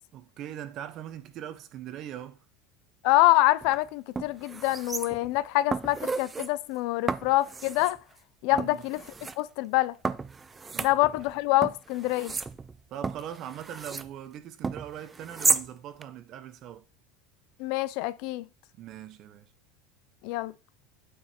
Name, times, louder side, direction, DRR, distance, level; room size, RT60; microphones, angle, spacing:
voice 1, 0.1-2.4 8.5-8.8 10.7-10.9 12.9-16.8 18.8-19.5, right 10 dB, 40° right, 0.9 m, -41 dB
voice 2, 3.0-8.0 8.4-9.0 9.4-9.9 10.8-12.3 17.6-18.4 20.2-20.5, left 17 dB, 55° left, 0.4 m, -25 dB
sound 1, 3.6-3.8 4.2-5.4 5.7-6.5 7.1-8.0 8.6-9.4 10.0-11.3 11.6-14.1 14.6-15.7 16.0-16.1, right 4 dB, 15° right, 0.4 m, -32 dB
9.0 x 4.7 x 4.3 m
supercardioid pair, 160°, 0 cm